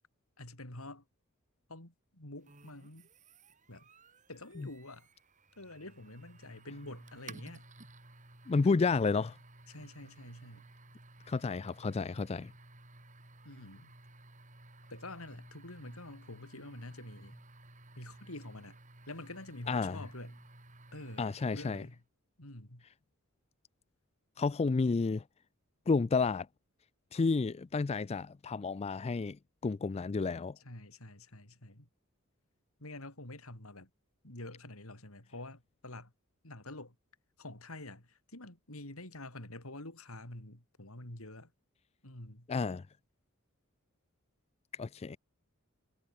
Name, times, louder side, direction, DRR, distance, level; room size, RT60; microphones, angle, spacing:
voice 1, 0.4-1.0 1.7-3.1 3.7-3.9 4.3-5.1 5.6-7.6 8.6-8.8 9.7-10.7 13.4-13.9 14.9-17.4 18.0-18.8 19.1-20.5 20.9-22.0 22.4-22.8 30.6-31.9 32.8-33.9 34.2-36.1 36.4-37.0 37.4-41.5 42.0-42.5, left 2 dB, 80° left, 5.4 m, -47 dB
sound 1, 2.4-22.0, right 2 dB, 35° right, 4.4 m, -56 dB
voice 2, 8.5-9.4 11.3-12.5 19.7-20.0 21.2-21.8 24.4-25.2 25.9-26.5 27.1-29.4 29.6-30.6 42.5-42.8 44.8-45.2, left 4 dB, 30° left, 0.4 m, -31 dB
head